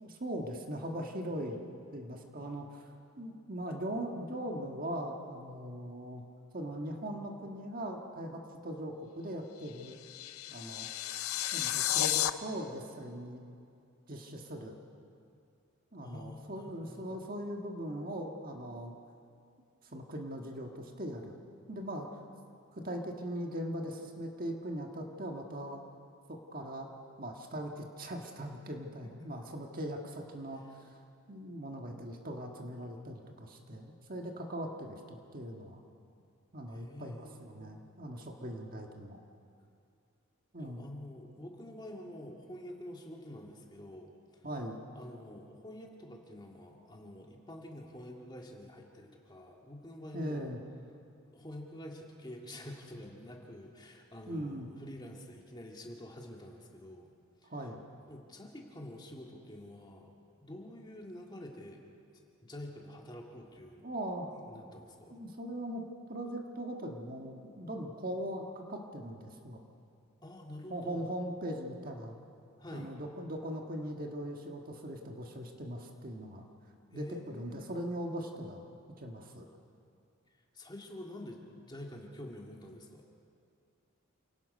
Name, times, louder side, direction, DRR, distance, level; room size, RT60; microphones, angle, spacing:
voice 1, 0.0-1.6 1.9-6.2 6.5-10.0 10.5-10.9 11.5-13.4 14.1-14.7 15.9-18.9 19.9-21.4 21.7-22.1 22.7-25.8 26.3-26.9 27.2-31.0 31.3-35.8 36.5-39.2 40.5-40.8 44.4-44.8 50.1-50.6 54.3-54.7 57.5-57.8 63.8-64.3 65.1-65.8 66.1-69.6 70.7-72.2 72.7-76.5 76.9-78.7 79.0-79.5, equal, 40° right, 2 dB, 1.6 m, -40 dB
sound 1, 9.6-12.3, left 12 dB, 90° left, 0.7 m, -32 dB
voice 2, 16.0-17.3 29.2-29.3 36.7-37.8 40.6-44.5 44.9-50.5 51.3-57.1 57.4-57.7 58.1-60.1 60.4-61.9 62.1-63.9 64.3-65.2 70.2-71.1 72.6-72.9 76.9-77.7 80.5-83.0, left 1 dB, 20° left, 0 dB, 2.0 m, -48 dB
28.0 x 18.0 x 5.3 m, 2.4 s
head